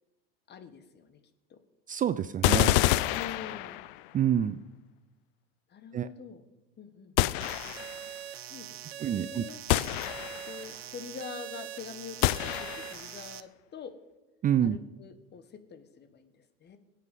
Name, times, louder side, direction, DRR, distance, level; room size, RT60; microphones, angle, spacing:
voice 1, 0.5-1.2 1.5-1.6 3.1-3.8 5.7-6.4 6.8-7.2 8.5-9.9 10.5-13.9 14.6-16.8, left 7 dB, 35° left, 11 dB, 1.6 m, -45 dB
voice 2, 1.9-2.8 4.1-4.6 5.9-6.1 9.0-9.4 14.4-14.8, right 9 dB, 25° right, 14 dB, 0.5 m, -27 dB
sound 1, 2.4-4.1 7.2-8.0 9.7-10.6 12.2-13.1, left 16 dB, 60° left, 0.6 m, -27 dB
sound 2, 7.4-13.4, right 12 dB, 85° right, 0.7 m, -43 dB
21.5 x 8.4 x 5.5 m, 1.1 s
hypercardioid pair, 85°, 30 cm